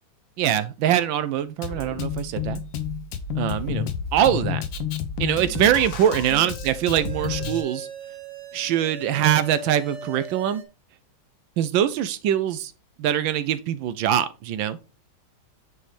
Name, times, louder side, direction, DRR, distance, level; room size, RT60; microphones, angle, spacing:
voice 1, 0.4-2.6 3.4-4.6 5.2-7.9 8.5-10.6 11.6-12.7 13.0-14.8, right 10 dB, 75° right, 1.2 m, -23 dB
Drum kit, 1.6-7.6, left 7 dB, 70° left, 1.6 m, -30 dB
sound 1, 5.5-10.6, right 3 dB, 40° right, 1.2 m, -40 dB
9.2 x 4.2 x 3.2 m
omnidirectional pair, 2.3 m